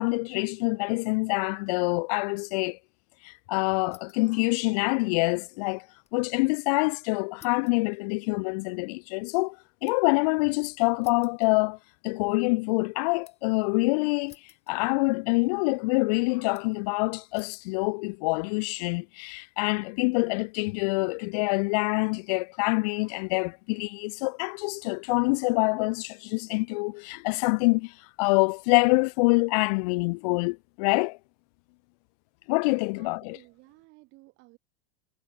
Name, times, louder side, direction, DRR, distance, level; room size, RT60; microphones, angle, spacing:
voice 1, 0.0-2.8 3.2-5.8 6.1-9.6 9.8-11.8 12.0-14.3 14.7-31.2 32.5-33.4, left 30 dB, 40° left, 0.7 m, -26 dB
sound 1, 3.8-4.4 4.7-6.2 6.5-6.6 7.4-10.2 11.0-12.2 12.5-13.6 14.3-15.2 15.4-16.0 16.5-16.9 17.3-17.7 18.4-18.8, left 10 dB, 20° left, 4.5 m, -58 dB
voice 2, 32.9-34.6, right 23 dB, 35° right, 5.6 m, -55 dB
supercardioid pair, 160°, 30 cm